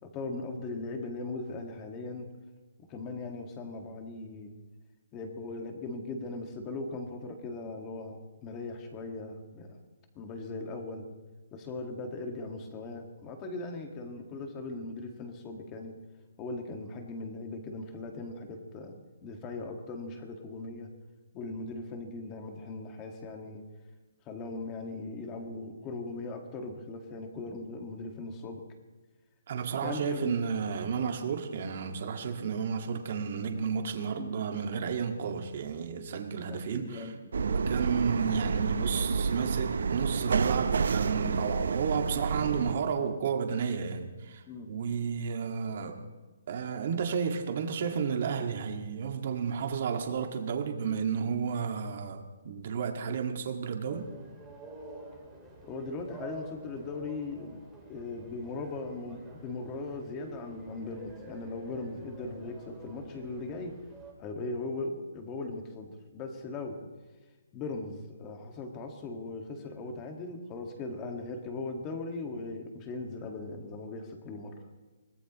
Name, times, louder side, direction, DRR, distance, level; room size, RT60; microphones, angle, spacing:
voice 1, 0.0-2.3 2.9-4.5 5.1-9.8 10.2-11.0 11.5-15.9 16.4-18.9 19.2-20.9 21.3-23.6 24.3-28.6 29.8-30.5 34.2-34.3 36.5-37.5 44.5-44.7 55.7-57.6 57.9-63.7 64.2-66.8 67.5-74.6, left 3 dB, 15° left, 4 dB, 1.8 m, -39 dB
voice 2, 29.5-46.0 46.5-54.1, right 6 dB, 40° right, 5 dB, 1.9 m, -32 dB
sound 1, 37.3-42.8, right 5 dB, 65° right, 0.8 m, -29 dB
sound 2, 53.9-64.1, right 2 dB, ahead, 2.6 m, -49 dB
25.0 x 18.5 x 3.1 m, 1.3 s
hypercardioid pair, 175°, 0 cm